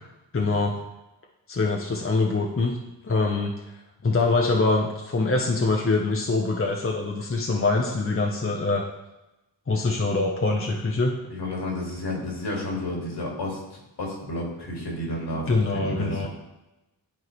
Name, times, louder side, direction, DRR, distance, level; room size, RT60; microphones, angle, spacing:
voice 1, 0.3-0.7 1.5-2.7 3.0-3.5 4.0-8.8 9.7-11.1 15.5-16.3, left 3 dB, 30° left, 0 dB, 0.9 m, -24 dB
voice 2, 11.3-16.3, left 1 dB, 60° left, -2 dB, 2.2 m, -31 dB
10.5 x 3.7 x 3.2 m, 0.98 s
cardioid pair, 45°, 45 cm